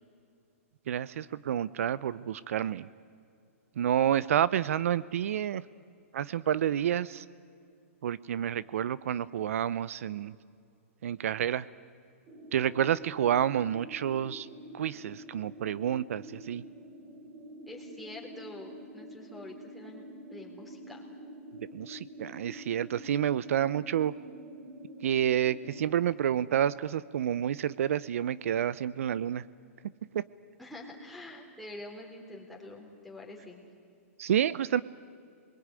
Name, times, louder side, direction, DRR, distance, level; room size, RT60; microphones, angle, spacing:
voice 1, 0.9-2.9 3.8-5.6 6.1-7.2 8.0-10.4 11.0-11.7 12.5-14.5 14.7-16.6 21.7-24.1 25.0-29.4 30.1-30.2 34.2-34.8, right 10 dB, 70° right, 18 dB, 0.6 m, -29 dB
sound 1, 12.3-25.9, equal, 30° right, 3.4 m, -47 dB
voice 2, 17.7-20.0 20.3-21.1 30.6-33.6, left 1 dB, ahead, -2 dB, 3.8 m, -46 dB
27.5 x 22.0 x 9.7 m, 2.4 s
hypercardioid pair, 150°, 8 cm